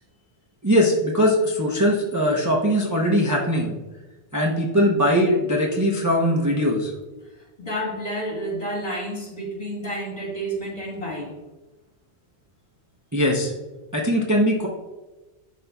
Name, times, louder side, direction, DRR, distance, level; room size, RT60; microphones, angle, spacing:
voice 1, 0.6-3.7 4.3-6.9 13.1-13.5 13.9-14.7, equal, 20° right, 0.7 m, -20 dB
voice 2, 7.3-11.4, right 1 dB, 35° left, 1.8 m, -30 dB
11.0 x 4.2 x 2.3 m
omnidirectional pair, 1.1 m